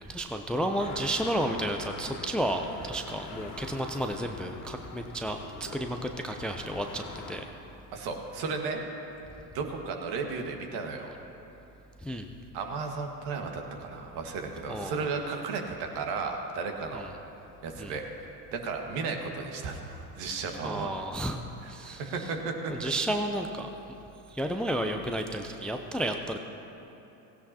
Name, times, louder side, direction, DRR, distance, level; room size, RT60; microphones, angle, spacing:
voice 1, 0.1-7.5 12.0-12.3 14.7-15.0 16.9-17.1 17.8-18.0 20.6-21.4 21.7-22.3 22.7-23.7 24.3-26.4, right 1 dB, ahead, 5 dB, 0.5 m, -32 dB
sound 1, 0.8-7.4, left 3 dB, 40° left, 2.0 m, -43 dB
voice 2, 7.9-8.8 9.4-11.1 12.5-17.1 17.6-18.0 18.5-20.9 21.8-22.9, right 4 dB, 55° right, 3 dB, 1.8 m, -34 dB
17.0 x 16.0 x 2.9 m, 3.0 s
hypercardioid pair, 80°, 48 cm